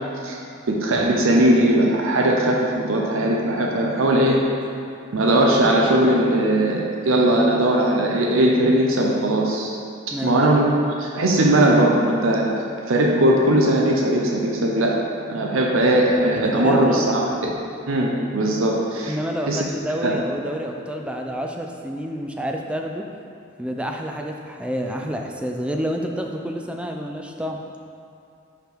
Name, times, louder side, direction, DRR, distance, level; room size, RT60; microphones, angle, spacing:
voice 1, 0.7-4.4 5.1-9.7 10.2-10.6 11.0-12.5 12.9-15.0 15.3-17.5 17.9-19.2 19.5-19.6 20.0-20.2, right 1 dB, 75° right, -1 dB, 0.6 m, -19 dB
voice 2, 10.1-10.4 16.4-17.0 19.1-23.1 23.6-27.6, equal, 5° right, 2 dB, 0.3 m, -28 dB
5.0 x 5.0 x 4.5 m, 2.5 s
head